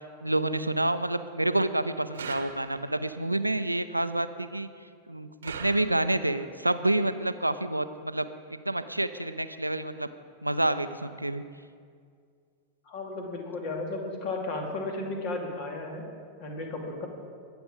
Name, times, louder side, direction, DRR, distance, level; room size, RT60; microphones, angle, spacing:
voice 1, 0.2-4.7 5.1-10.1 10.4-11.4, right 1 dB, 85° right, 11 dB, 0.5 m, -28 dB
sound 1, 2.1-3.1 5.4-6.4, right 6 dB, 65° right, 1.0 m, -41 dB
voice 2, 12.9-16.0 16.4-17.1, left 2 dB, 45° left, 2 dB, 2.5 m, -34 dB
21.0 x 8.0 x 5.0 m, 2.2 s
figure-of-eight pair, 90°, 0 cm